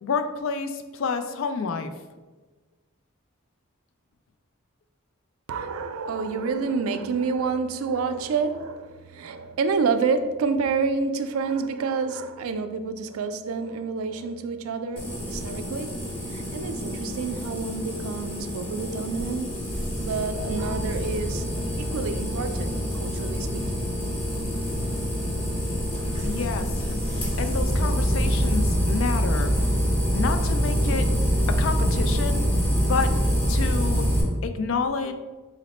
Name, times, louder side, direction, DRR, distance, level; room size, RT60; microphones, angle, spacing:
voice 1, 0.0-1.9 26.2-29.5 30.1-31.1 31.5-32.5 32.8-33.2 33.5-34.1 34.4-35.1, left 5 dB, 65° left, 8 dB, 0.3 m, -29 dB
voice 2, 5.5-16.0 16.3-19.5 20.0-21.5 21.8-23.9, right 4 dB, 80° right, 9 dB, 0.3 m, -28 dB
sound 1, 15.0-34.2, equal, 25° left, 0.8 m, -26 dB
3.9 x 2.1 x 4.1 m, 1.3 s
head